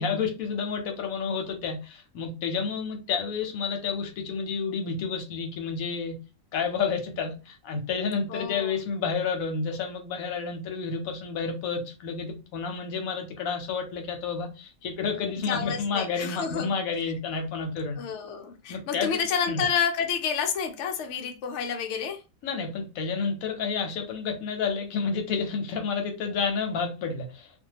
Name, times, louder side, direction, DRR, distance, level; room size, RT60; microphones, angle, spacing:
voice 1, 0.0-6.2 6.5-18.0 18.7-19.1 19.5-19.6 22.4-27.6, left 5 dB, 85° left, 1.1 m, -30 dB
voice 2, 8.3-8.7 15.4-16.7 17.0-17.1 18.0-22.2, left 7 dB, 65° left, 0.8 m, -29 dB
2.6 x 2.2 x 2.8 m
omnidirectional pair, 1.4 m